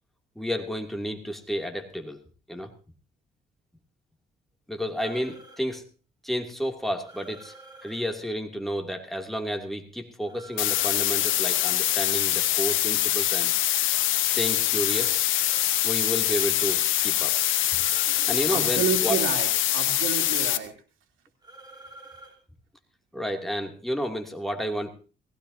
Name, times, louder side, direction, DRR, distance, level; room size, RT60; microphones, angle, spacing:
voice 1, 0.4-2.2 2.5-2.7 4.7-5.8 6.2-7.5 7.8-13.5 14.2-15.2 15.8-17.4 18.0-19.2 23.1-24.9, equal, ahead, 3 dB, 2.7 m, -31 dB
sound 1, 5.0-5.6 7.0-8.0 10.3-11.8 14.8-15.7 17.1-17.4 17.7-18.3 21.4-22.3, right 2 dB, 20° right, 4.0 m, -48 dB
sound 2, 10.6-20.6, left 13 dB, 85° left, 1.1 m, -24 dB
voice 2, 18.5-20.7, right 7 dB, 80° right, 3 dB, 3.0 m, -30 dB
19.5 x 16.5 x 2.8 m, 0.34 s
cardioid pair, 90°, 20 cm